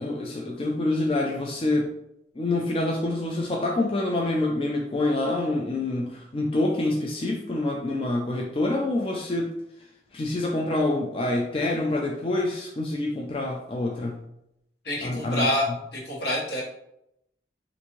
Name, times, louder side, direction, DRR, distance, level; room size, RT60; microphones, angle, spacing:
voice 1, 0.0-1.9 2.4-9.5 9.8-9.9 10.1-14.2 15.0-15.5, left 2 dB, 30° left, 0 dB, 0.3 m, -26 dB
voice 2, 14.8-16.6, left 1 dB, 75° left, -4 dB, 1.2 m, -27 dB
3.4 x 2.6 x 3.0 m, 0.80 s
head